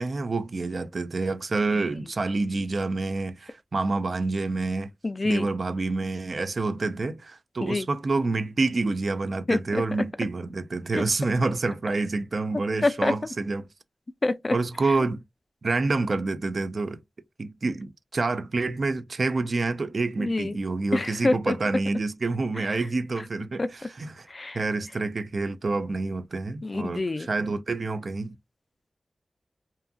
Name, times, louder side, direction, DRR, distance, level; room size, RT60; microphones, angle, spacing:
voice 1, 0.0-4.9 5.2-13.7 14.5-15.2 15.6-17.0 17.4-24.3 24.5-28.4, right 3 dB, 65° right, 0.4 m, -28 dB
voice 2, 5.0-5.5 7.6-7.9 9.5-9.8 10.9-11.0 12.8-13.1 14.2-14.6 20.2-20.5 20.9-21.6 23.6-23.7 24.3-24.6 26.6-27.3, left 2 dB, 45° left, 0.3 m, -26 dB
2.6 x 2.4 x 2.3 m
cardioid pair, 50°, 0 cm